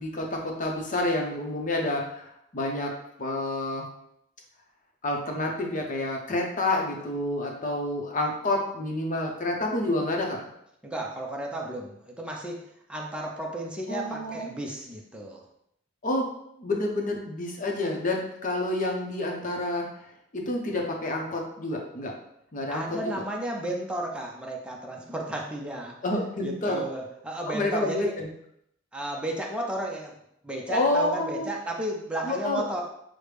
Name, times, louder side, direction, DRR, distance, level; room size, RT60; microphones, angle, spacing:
voice 1, 0.0-2.9 3.2-3.9 5.0-10.4 13.9-14.5 16.0-16.3 16.6-20.1 20.3-22.1 22.5-23.0 26.0-26.9 27.5-28.3 30.7-31.5 32.2-32.6, left 2 dB, 45° left, 1 dB, 0.8 m, -28 dB
voice 2, 10.8-12.6 12.9-15.4 22.7-26.0 26.4-28.1 28.9-30.1 30.4-32.8, right 1 dB, 5° right, -1 dB, 0.6 m, -33 dB
6.3 x 2.1 x 3.3 m, 0.76 s
head